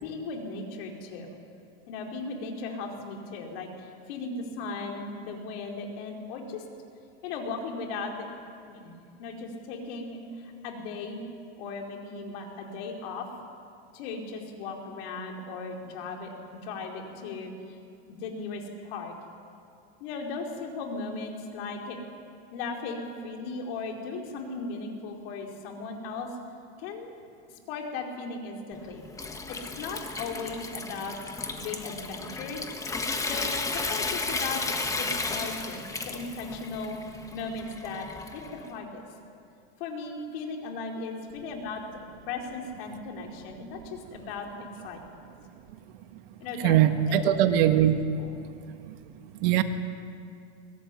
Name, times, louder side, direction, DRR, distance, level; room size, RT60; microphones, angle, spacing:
voice 1, 0.0-1.3 1.9-6.6 7.2-8.3 8.7-8.9 9.2-11.3 11.6-13.3 13.9-16.3 16.6-17.8 18.1-19.1 20.0-22.0 22.5-26.3 26.8-27.1 27.5-29.0 29.5-32.7 33.3-37.0 37.3-38.1 38.3-39.0 39.8-41.8 42.3-44.5 44.8-45.0 46.4-46.8 47.1-47.2 48.2-48.4, left 4 dB, 60° left, 1 dB, 4.7 m, -37 dB
Water tap faucet / Sink (filling or washing) / Trickle dribble, 28.7-38.7, left 3 dB, 10° left, 1.5 m, -34 dB
voice 2, 46.6-48.0 49.4-49.6, right 11 dB, 60° right, 8 dB, 1.8 m, -21 dB
23.0 x 20.0 x 9.9 m, 2.4 s
supercardioid pair, 150°, 33 cm